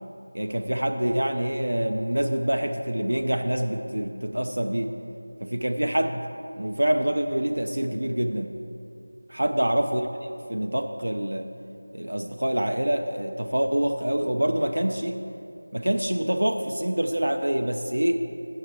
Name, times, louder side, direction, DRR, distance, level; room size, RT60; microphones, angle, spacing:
voice 1, 0.3-4.9 5.4-6.2 6.6-8.6 9.3-11.5 11.9-15.2 15.7-18.2, right 1 dB, 80° right, 5 dB, 0.5 m, -26 dB
6.5 x 6.5 x 7.1 m, 2.6 s
figure-of-eight pair, 170°, 0 cm